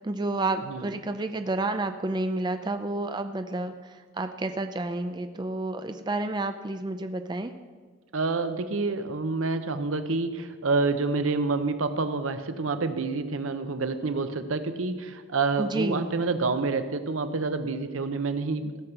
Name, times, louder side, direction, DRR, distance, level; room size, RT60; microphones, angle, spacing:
voice 1, 0.0-7.5 15.6-16.1, right 2 dB, 20° right, 8 dB, 0.4 m, -30 dB
voice 2, 8.1-18.8, right 3 dB, 85° right, 10 dB, 0.8 m, -28 dB
15.5 x 6.0 x 6.6 m, 1.5 s
head